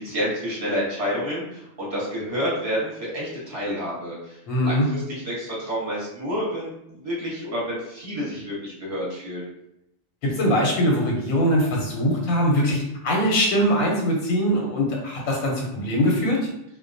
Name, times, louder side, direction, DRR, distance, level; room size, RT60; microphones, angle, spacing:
voice 1, 0.0-9.5, equal, 30° right, -7 dB, 1.0 m, -29 dB
voice 2, 4.5-4.9 10.2-16.4, equal, 85° left, -2 dB, 1.0 m, -22 dB
2.2 x 2.2 x 2.5 m, 0.81 s
omnidirectional pair, 1.4 m